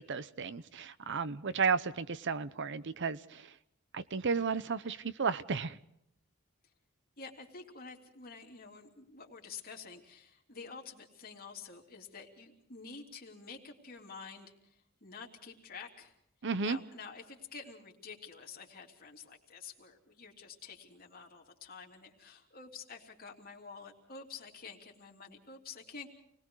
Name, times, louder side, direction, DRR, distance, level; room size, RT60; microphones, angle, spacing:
voice 1, 0.0-3.5 3.9-5.8 16.4-16.8, right 5 dB, 60° right, 0.8 m, -33 dB
voice 2, 7.2-16.1 16.6-26.1, left 5 dB, 45° left, 3.3 m, -49 dB
28.5 x 20.0 x 4.8 m
head